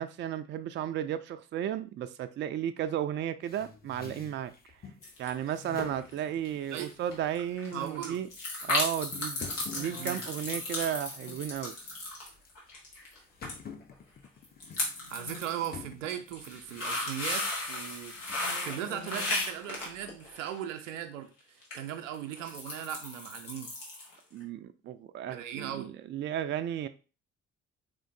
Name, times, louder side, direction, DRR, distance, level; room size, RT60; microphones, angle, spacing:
voice 1, 0.0-4.5 5.2-8.3 8.6-11.7 24.3-26.9, right 10 dB, 30° right, 0.4 m, -34 dB
sound 1, 3.5-5.0 5.5-7.3 7.6-8.0 8.6-8.7 9.1-11.4 11.7-12.1 12.4-12.5 13.4-17.4 17.9-19.6, left 5 dB, 25° left, 0.7 m, -47 dB
sound 2, 5.0-5.5 5.8-6.2 6.4-6.5 6.8-6.9 7.1-13.2 13.4-13.5 13.8-13.9 14.4-15.7 16.1-20.6 21.6-21.7 22.1-24.1 24.4-24.5, left 2 dB, 80° left, 1.0 m, -35 dB
voice 2, 7.7-8.2 9.9-10.2 15.1-18.1 18.6-21.3 21.7-23.7 25.3-25.9, right 10 dB, 75° right, 0.6 m, -38 dB
3.7 x 3.6 x 2.6 m
figure-of-eight pair, 40°, 38 cm